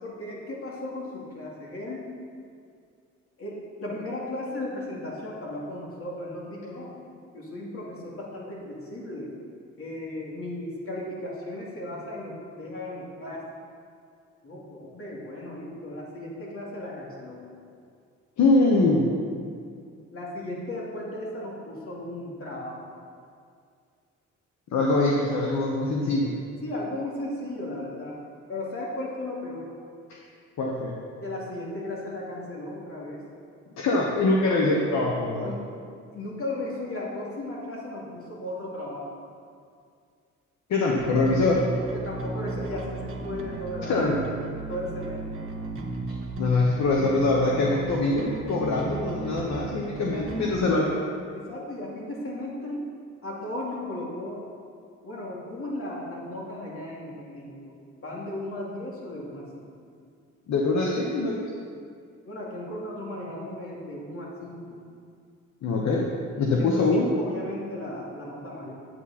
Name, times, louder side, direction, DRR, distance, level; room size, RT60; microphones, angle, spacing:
voice 1, 0.0-2.0 3.4-6.9 7.3-9.3 9.8-13.4 14.4-17.4 20.1-22.8 26.6-28.2 28.5-29.8 31.2-33.2 35.4-35.7 36.1-39.1 41.9-44.0 44.7-45.2 50.1-50.7 51.3-52.8 53.2-54.5 55.0-57.7 58.0-59.7 62.3-64.8 66.6-68.7, left 1 dB, 50° left, -4 dB, 2.7 m, -36 dB
voice 2, 18.4-19.0 24.7-26.3 30.6-30.9 33.8-35.5 40.7-41.6 43.9-44.2 46.4-50.9 60.5-61.4 65.6-66.1 66.4-67.1, left 2 dB, 65° left, -2 dB, 1.2 m, -23 dB
Bass guitar, 41.0-50.6, right 3 dB, 45° right, 1.4 m, -35 dB
8.9 x 8.9 x 4.2 m, 2.3 s
cardioid pair, 90°, 30 cm